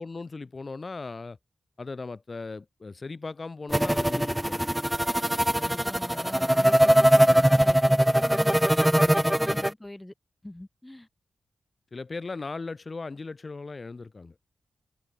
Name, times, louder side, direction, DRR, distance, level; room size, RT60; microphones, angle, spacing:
voice 1, 0.0-1.4 1.8-4.7 9.0-9.7 11.9-14.3, left 3 dB, 45° left, 4.3 m, -38 dB
sound 1, 3.7-9.7, right 1 dB, 10° right, 0.9 m, -21 dB
voice 2, 5.5-8.9 9.4-10.1 10.4-11.1, left 1 dB, 15° left, 5.1 m, -42 dB
cardioid pair, 55°, 0 cm